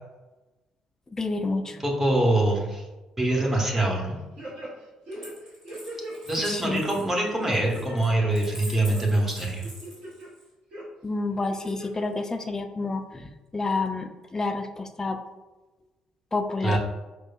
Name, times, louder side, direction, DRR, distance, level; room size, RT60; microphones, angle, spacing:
voice 1, 1.1-1.8 6.5-6.8 11.0-15.2 16.3-16.8, left 3 dB, 20° left, 7 dB, 0.3 m, -29 dB
voice 2, 1.7-2.8 3.2-4.2 6.3-9.7 16.6-16.8, right 1 dB, 15° right, -1 dB, 0.9 m, -24 dB
sound 1, 3.3-4.1 4.4-6.1 6.6-6.9 7.4-8.0 8.3-9.2 9.6-10.3 10.7-10.8 11.4-12.0 12.4-12.5, right 1 dB, 55° right, 1.0 m, -40 dB
Coin (dropping), 5.1-10.5 11.6-12.3, equal, 75° right, 1.3 m, -46 dB
4.6 x 2.2 x 2.3 m, 1.1 s
figure-of-eight pair, 45°, 3 cm